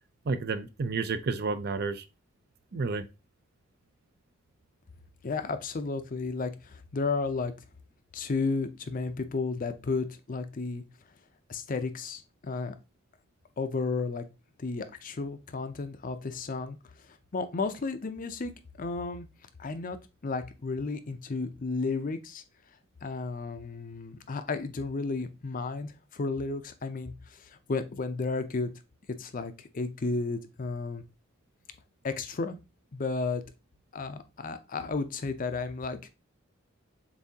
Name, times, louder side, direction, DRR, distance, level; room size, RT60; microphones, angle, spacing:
voice 1, 0.3-2.0 2.7-3.0, right 4 dB, 50° right, 0.5 m, -30 dB
voice 2, 5.2-7.5 8.1-10.8 11.5-12.7 13.6-14.2 14.6-16.8 17.3-18.5 18.8-19.3 19.6-20.0 20.2-22.4 23.0-28.7 29.2-31.0 32.0-32.6 32.9-33.4 33.9-36.0, left 3 dB, 40° left, 0.5 m, -33 dB
7.0 x 2.7 x 2.7 m
head